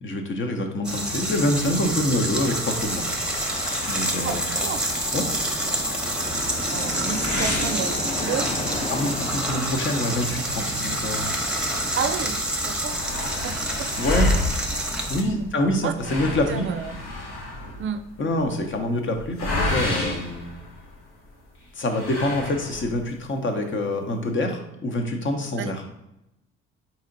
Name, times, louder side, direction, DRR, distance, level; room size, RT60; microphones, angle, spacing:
voice 1, 0.0-3.1 3.9-4.5 5.1-5.3 8.9-11.3 14.0-14.3 15.1-16.7 18.2-20.5 21.8-25.8, left 1 dB, 40° left, 4 dB, 0.9 m, -26 dB
sound 1, 0.8-15.2, right 1 dB, 5° right, 1.0 m, -28 dB
sound 2, 2.7-12.3, left 2 dB, 20° left, 0.6 m, -35 dB
voice 2, 4.2-4.8 5.6-5.8 6.7-8.5 12.0-13.0 13.4-13.9 15.2-15.5 15.8-17.0 17.8-18.0 22.6-22.7 25.6-25.7, right 7 dB, 40° right, 11 dB, 0.5 m, -31 dB
sound 3, 7.1-8.6 9.1-9.2 9.6-9.7 10.5-11.8 12.2-12.3 12.5-21.2 21.9-23.0, left 1 dB, 70° left, 1.3 m, -30 dB
4.1 x 2.9 x 3.9 m, 0.87 s
hypercardioid pair, 50°, 31 cm